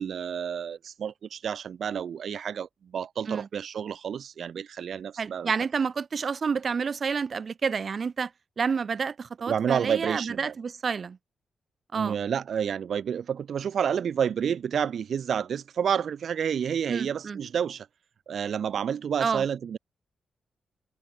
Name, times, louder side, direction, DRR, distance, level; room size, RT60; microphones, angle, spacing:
voice 1, 0.0-5.5 9.5-10.5 11.9-17.9 18.3-19.8, right 8 dB, 70° right, 0.7 m, -29 dB
voice 2, 5.2-8.3 8.6-11.2 11.9-12.2 16.9-17.4 19.2-19.4, right 5 dB, 50° right, 1.4 m, -29 dB
cardioid pair, 95°, 0 cm